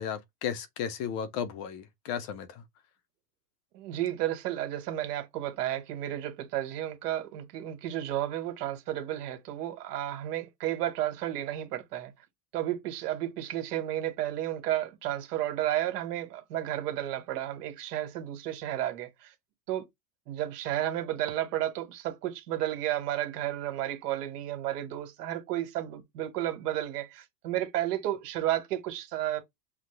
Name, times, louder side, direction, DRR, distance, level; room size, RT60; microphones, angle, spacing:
voice 1, 0.0-2.6, left 8 dB, 35° left, 0.5 m, -34 dB
voice 2, 3.7-12.1 12.5-19.3 19.7-19.8 20.3-29.4, right 12 dB, 80° right, 1.7 m, -32 dB
5.9 x 2.1 x 3.2 m
supercardioid pair, 155°, 46 cm